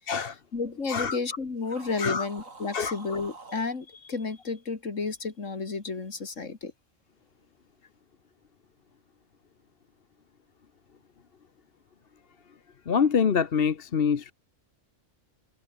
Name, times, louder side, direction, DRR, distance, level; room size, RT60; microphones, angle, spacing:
voice 1, 0.2-6.7, left 4 dB, 70° left, 2.9 m, -32 dB
sound 1, 1.6-3.7, right 3 dB, 80° right, 3.6 m, -46 dB
voice 2, 12.9-14.3, left 6 dB, 50° left, 1.2 m, -25 dB
omnidirectional pair, 1.3 m